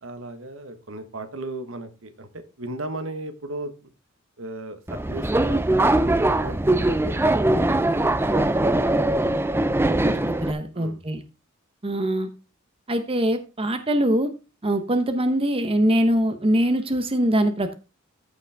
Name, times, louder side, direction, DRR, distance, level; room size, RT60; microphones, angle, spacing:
voice 1, 0.0-3.9 4.4-9.4 10.7-11.0, right 2 dB, 70° right, 9 dB, 1.3 m, -37 dB
Subway metro underground, 4.9-10.5, right 1 dB, 10° right, 0.5 m, -21 dB
voice 2, 10.0-11.2 11.8-12.3 12.9-14.3 14.6-17.7, right 1 dB, 25° right, 8 dB, 0.9 m, -23 dB
14.0 x 5.3 x 3.5 m, 0.30 s
head